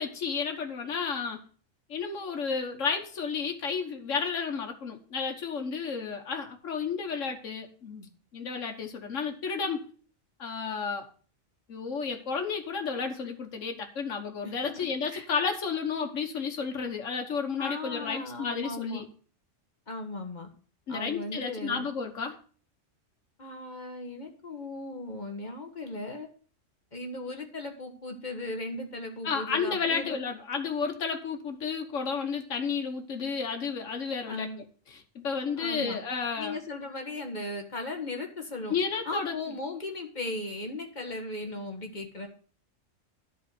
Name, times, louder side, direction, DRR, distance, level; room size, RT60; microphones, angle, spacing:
voice 1, 0.0-1.4 1.9-9.8 10.4-11.1 11.7-19.0 20.9-22.3 29.2-36.6 38.7-39.3, left 5 dB, 80° left, 3 dB, 1.6 m, -32 dB
voice 2, 14.4-15.3 17.6-19.0 19.9-20.5 20.9-21.9 23.4-26.3 26.9-30.2 34.3-34.6 35.6-36.0 36.4-38.8 39.0-42.3, left 2 dB, 35° left, 4 dB, 1.5 m, -37 dB
11.0 x 4.3 x 7.6 m, 0.43 s
omnidirectional pair, 1.3 m